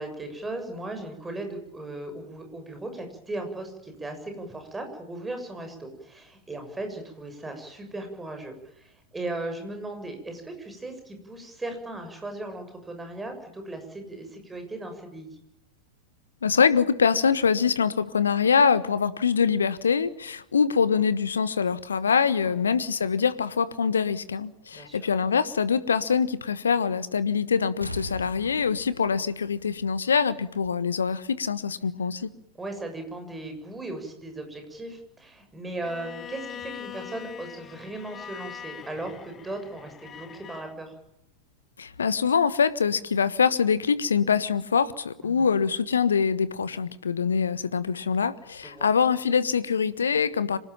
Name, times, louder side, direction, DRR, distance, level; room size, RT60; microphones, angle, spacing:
voice 1, 0.0-15.4 22.4-22.6 24.7-25.0 32.6-40.9 45.2-45.5 48.6-48.9, right 2 dB, 10° right, 6 dB, 7.0 m, -37 dB
voice 2, 16.4-32.3 41.8-50.6, left 6 dB, 70° left, 16 dB, 1.4 m, -24 dB
Explosion, 27.8-30.4 30.8-30.9, left 1 dB, 90° left, 1.6 m, -40 dB
Bowed string instrument, 35.8-40.7, left 9 dB, 25° left, 1.6 m, -42 dB
26.0 x 18.5 x 9.0 m, 0.81 s
figure-of-eight pair, 90°, 0 cm